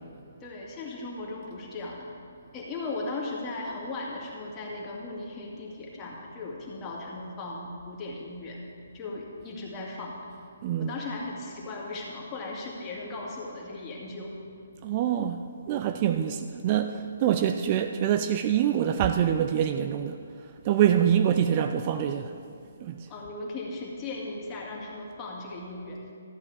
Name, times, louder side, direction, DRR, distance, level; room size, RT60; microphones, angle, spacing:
voice 1, 0.4-2.1 2.5-8.6 8.9-10.2 10.8-14.3 23.1-26.0, left 2 dB, 20° left, -3 dB, 2.1 m, -37 dB
voice 2, 10.6-11.0 14.8-15.4 15.7-20.2 20.6-22.3 22.8-23.1, right 9 dB, 35° right, 8 dB, 0.4 m, -25 dB
13.5 x 8.6 x 4.9 m, 2.5 s
figure-of-eight pair, 135°, 0 cm